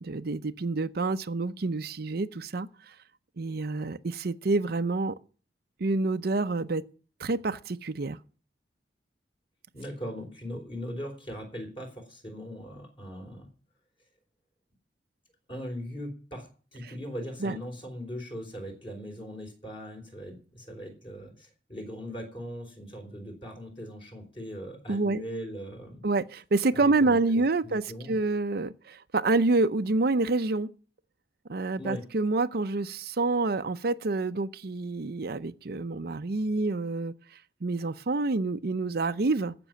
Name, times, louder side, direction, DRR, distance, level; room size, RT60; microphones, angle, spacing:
voice 1, 0.0-2.7 3.4-5.1 5.8-6.8 7.2-8.2 17.4-17.6 24.9-25.2 26.0-30.7 31.5-37.1 37.6-39.5, right 3 dB, 60° right, 0.6 m, -27 dB
voice 2, 9.7-13.5 15.5-16.5 16.7-26.0 26.7-28.2 31.8-32.0, equal, 30° left, 4.1 m, -40 dB
15.0 x 6.1 x 9.2 m
head